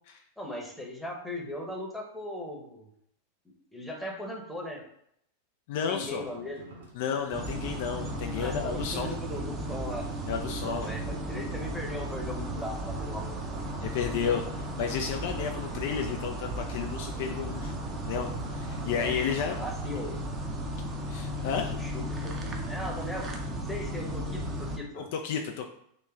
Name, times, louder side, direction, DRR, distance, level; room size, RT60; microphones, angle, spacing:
voice 1, 0.4-2.9 3.4-4.8 5.9-6.6 8.4-10.0 10.7-13.4 18.9-20.2 21.8-23.3 23.7-25.0, left 1 dB, 5° left, -1 dB, 0.8 m, -38 dB
voice 2, 5.7-6.3 6.9-9.1 10.3-10.9 13.8-17.7 18.1-19.6 21.1-21.7 24.9-25.7, left 7 dB, 50° left, 3 dB, 0.3 m, -32 dB
sound 1, 6.0-19.2, right 2 dB, 60° right, 0.9 m, -49 dB
sound 2, 7.3-24.8, right 1 dB, 25° right, 0.5 m, -35 dB
3.0 x 3.0 x 3.5 m, 0.72 s
figure-of-eight pair, 90°, 0 cm